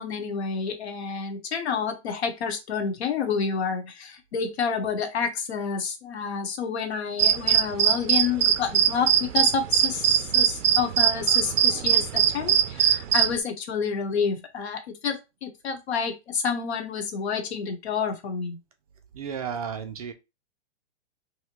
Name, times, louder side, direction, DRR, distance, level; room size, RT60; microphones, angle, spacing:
voice 1, 0.0-18.6, left 6 dB, 65° left, 5 dB, 1.1 m, -29 dB
sound 1, 7.2-13.3, right 9 dB, 80° right, 0.6 m, -21 dB
voice 2, 19.1-20.1, right 7 dB, 35° right, 7 dB, 0.4 m, -33 dB
3.5 x 2.8 x 2.9 m, 0.25 s
hypercardioid pair, 150°, 35 cm